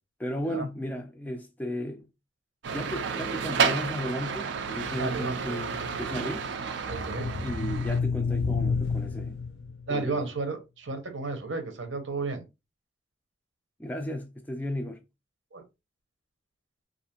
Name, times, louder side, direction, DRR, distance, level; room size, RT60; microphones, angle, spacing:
voice 1, 0.2-2.1 2.7-6.5 7.4-9.4 9.9-10.3 13.8-15.0, equal, 10° left, 0.3 m, -35 dB
sound 1, 2.6-8.0, right 6 dB, 70° right, 0.4 m, -31 dB
sound 2, 4.7-9.9, left 4 dB, 80° left, 0.4 m, -31 dB
voice 2, 5.0-5.4 6.9-7.3 9.9-12.4 15.5-15.6, right 3 dB, 90° right, 0.8 m, -33 dB
2.5 x 2.4 x 2.8 m
head